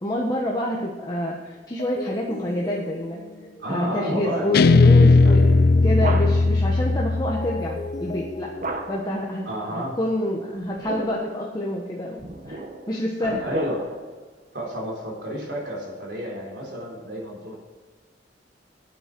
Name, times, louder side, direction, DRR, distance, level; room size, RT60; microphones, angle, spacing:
voice 1, 0.0-3.2 3.7-8.5 8.9-12.2 12.5-12.6 12.9-13.4, left 1 dB, 20° left, -2 dB, 1.2 m, -27 dB
sound 1, 1.8-9.5, left 2 dB, 45° left, 0.9 m, -38 dB
voice 2, 3.6-4.6 5.2-5.3 9.5-10.0 13.2-13.9 14.5-17.6, equal, 80° right, -2 dB, 3.8 m, -31 dB
Guitar, 4.5-7.8, left 3 dB, 60° left, 0.4 m, -17 dB
sound 2, 5.9-6.6 8.6-9.2 10.6-11.4 12.2-14.1, right 2 dB, 50° right, 1.1 m, -33 dB
9.4 x 8.8 x 6.1 m, 1.5 s
head